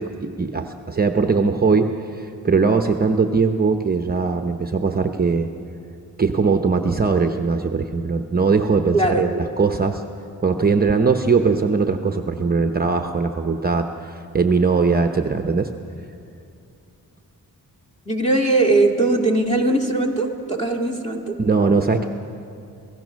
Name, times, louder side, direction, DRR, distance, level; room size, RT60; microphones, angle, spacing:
voice 1, 0.0-5.5 6.2-10.0 10.4-15.7 21.4-22.1, right 4 dB, 25° right, 6 dB, 0.8 m, -20 dB
voice 2, 8.9-9.2 18.1-21.4, right 2 dB, 20° left, 1 dB, 2.1 m, -20 dB
28.0 x 17.0 x 6.3 m, 2.6 s
wide cardioid pair, 145°, 36 cm